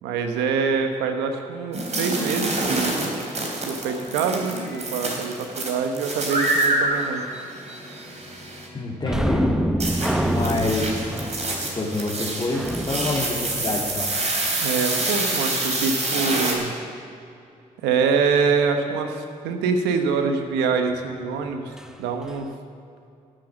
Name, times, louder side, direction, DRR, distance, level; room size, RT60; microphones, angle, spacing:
voice 1, 0.0-3.1 3.7-7.2 14.6-16.7 17.8-21.7 22.0-22.5, right 5 dB, 90° right, 6 dB, 1.1 m, -25 dB
sound 1, 1.7-8.7 9.8-16.5, right 2 dB, 40° right, 3.6 m, -27 dB
voice 2, 8.7-9.4 10.3-10.9 11.6-14.1, left 2 dB, 30° left, -7 dB, 2.6 m, -27 dB
sound 2, 9.0-14.4 21.8-21.9 22.3-22.4, equal, 5° right, 1.0 m, -27 dB
12.0 x 9.1 x 7.2 m, 2.5 s
supercardioid pair, 50°, 17 cm